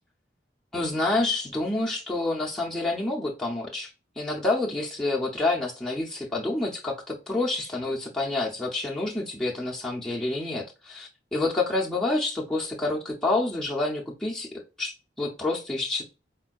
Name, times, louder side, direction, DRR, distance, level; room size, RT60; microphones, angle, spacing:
voice 1, 0.7-16.0, left 2 dB, 5° left, -4 dB, 0.6 m, -28 dB
4.3 x 2.1 x 2.3 m, 0.30 s
head